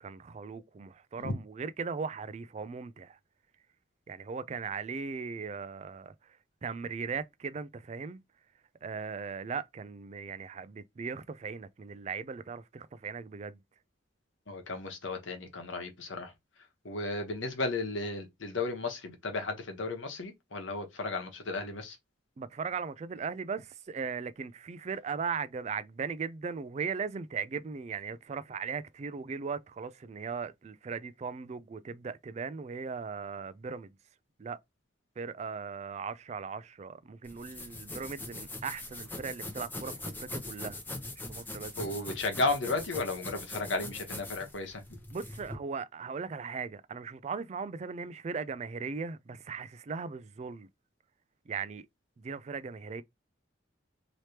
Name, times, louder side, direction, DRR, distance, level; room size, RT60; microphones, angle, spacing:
voice 1, 0.0-3.2 4.1-8.2 8.8-13.6 22.4-33.9 34.4-34.6 35.2-40.8 41.2-41.7 45.1-50.7 51.5-51.9 52.2-53.0, right 5 dB, 35° right, 0.3 m, -38 dB
voice 2, 14.5-16.3 16.8-22.0 41.8-44.8, left 3 dB, 80° left, 1.1 m, -34 dB
sound 1, 37.3-45.6, left 2 dB, 10° left, 0.7 m, -42 dB
3.3 x 3.0 x 2.8 m
head